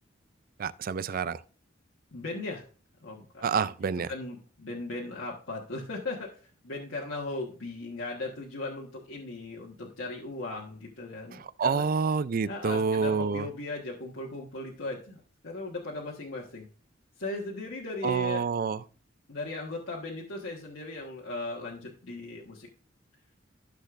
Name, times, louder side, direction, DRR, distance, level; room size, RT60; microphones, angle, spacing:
voice 1, 0.6-1.4 3.4-4.1 11.6-13.5 18.0-18.8, right 5 dB, 50° right, 0.4 m, -28 dB
voice 2, 2.1-2.6 3.0-3.6 4.1-11.8 12.4-16.7 17.2-18.5 19.3-22.7, left 2 dB, 80° left, 1.4 m, -37 dB
13.0 x 6.5 x 2.5 m
head